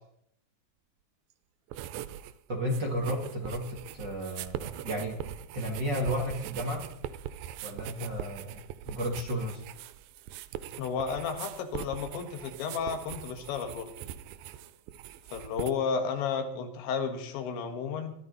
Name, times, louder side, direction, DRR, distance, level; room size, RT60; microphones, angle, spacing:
sound 1, 1.7-2.3 2.6-15.7, right 11 dB, 90° right, 2.0 m, -41 dB
voice 1, 2.5-6.9 7.6-9.6, equal, 35° right, -1 dB, 1.9 m, -33 dB
voice 2, 10.8-13.9 15.3-18.1, left 6 dB, 85° left, 7 dB, 3.9 m, -32 dB
21.5 x 13.5 x 4.1 m, 0.73 s
omnidirectional pair, 5.1 m